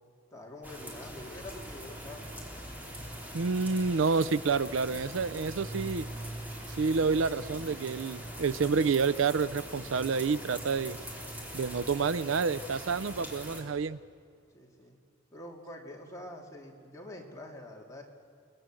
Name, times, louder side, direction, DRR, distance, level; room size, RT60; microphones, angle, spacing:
voice 1, 0.3-2.3 14.5-15.0 15.3-18.0, left 1 dB, 15° left, -1 dB, 3.0 m, -46 dB
sound 1, 0.6-13.6, equal, 10° right, 3.8 m, -42 dB
voice 2, 3.3-6.0 6.8-11.0 11.5-14.0, right 5 dB, 75° right, 15 dB, 0.5 m, -28 dB
29.5 x 20.0 x 7.7 m, 2.2 s
head